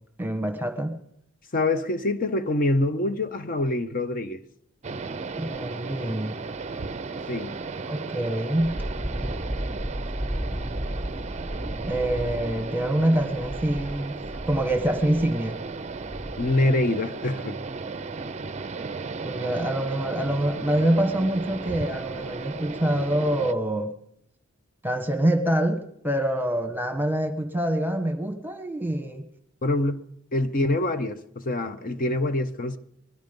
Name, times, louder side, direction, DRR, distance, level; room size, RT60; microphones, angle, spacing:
voice 1, 0.2-1.0 5.3-6.3 7.9-8.8 11.5-14.2 14.5-15.6 19.2-23.9 24.8-29.2, right 1 dB, 10° right, 1.4 m, -25 dB
voice 2, 1.5-4.4 7.3-7.5 16.4-17.6 29.6-30.0 30.3-32.8, left 2 dB, 45° left, 0.8 m, -25 dB
sound 1, 4.8-23.5, right 4 dB, 35° right, 0.5 m, -35 dB
Wind, 8.6-16.7, equal, 10° left, 2.4 m, -34 dB
20.0 x 12.0 x 5.3 m
head